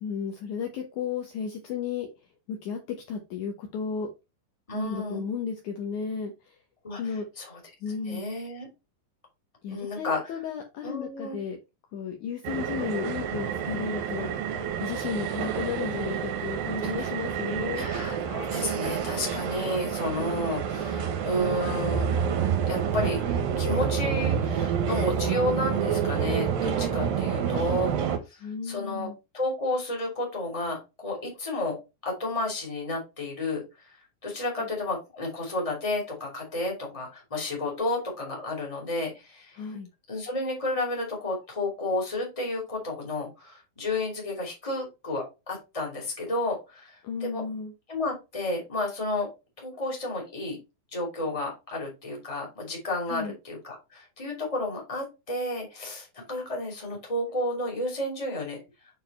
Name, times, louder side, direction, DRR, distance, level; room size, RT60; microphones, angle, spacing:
voice 1, 0.0-2.1 2.5-4.1 4.7-6.6 7.0-7.3 7.8-8.3 9.6-11.6 11.9-14.5 14.8-17.9 28.4-29.2 34.6-34.7 39.5-39.9 47.0-47.7 53.1-53.4, left 6 dB, 70° left, 2 dB, 2.1 m, -34 dB
voice 2, 4.7-5.3 6.8-7.0 7.4-7.6 8.0-8.7 9.7-10.2 10.8-11.4 17.0-17.1 17.7-22.1 22.7-27.9 28.3-29.1 29.3-31.7 32.0-33.6 34.2-39.6 40.1-47.0 47.2-47.4 47.9-49.3 49.6-50.6 50.9-53.6 53.9-58.6, left 2 dB, 10° left, 0 dB, 2.3 m, -31 dB
sound 1, 12.4-28.2, right 7 dB, 75° right, 2.8 m, -28 dB
6.8 x 4.4 x 4.1 m, 0.26 s
omnidirectional pair, 4.2 m